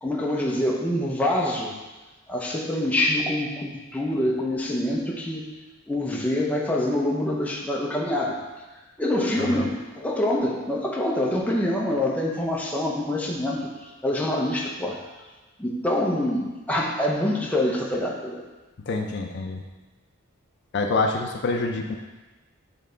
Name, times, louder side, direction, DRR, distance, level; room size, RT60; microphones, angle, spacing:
voice 1, 0.0-1.7 2.3-5.5 5.9-8.4 9.0-15.0 15.6-18.4, left 1 dB, 5° left, -2 dB, 0.7 m, -25 dB
voice 2, 9.4-9.7 18.9-19.6 20.7-22.0, left 3 dB, 55° left, 3 dB, 0.5 m, -26 dB
8.7 x 3.3 x 3.9 m, 1.2 s
head